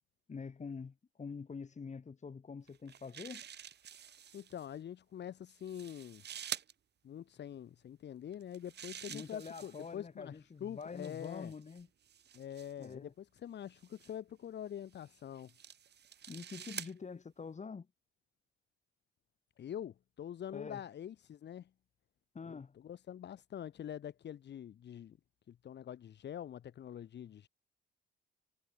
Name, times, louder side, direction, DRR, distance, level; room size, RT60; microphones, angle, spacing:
voice 1, 0.3-3.4 9.1-11.9 12.8-13.1 16.3-17.9 20.5-20.8 22.3-22.8, left 5 dB, 35° left, 7.5 m, -46 dB
sound 1, 2.7-4.7 5.5-6.7 8.3-10.0 10.8-12.9 13.8-14.1 14.9-16.9, right 9 dB, 60° right, 3.8 m, -48 dB
voice 2, 4.3-6.2 7.0-11.5 12.3-15.5 19.6-21.7 22.5-22.6 22.8-25.2 25.5-27.5, left 10 dB, 60° left, 1.8 m, -45 dB
cardioid pair, 90°, 20 cm